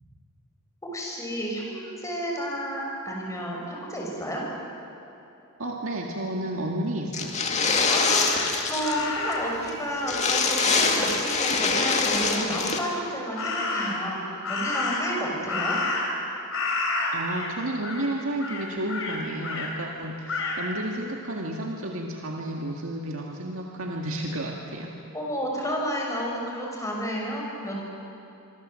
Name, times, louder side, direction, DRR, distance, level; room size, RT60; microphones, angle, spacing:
voice 1, 0.9-4.4 7.9-15.8 25.1-27.7, equal, 15° left, -2 dB, 6.1 m, -31 dB
voice 2, 5.6-7.5 17.1-24.9, right 1 dB, 70° right, 0 dB, 2.0 m, -31 dB
sound 1, 7.1-9.1 9.3-9.4 9.7-9.8 10.0-12.8, left 4 dB, 30° left, 2.2 m, -24 dB
Crow, 7.8-9.6 13.3-14.1 14.4-16.2 16.5-17.5 17.8-18.1 18.4-19.7 20.3-20.6, left 3 dB, 65° left, 4.7 m, -30 dB
26.0 x 23.5 x 7.8 m, 2.8 s
head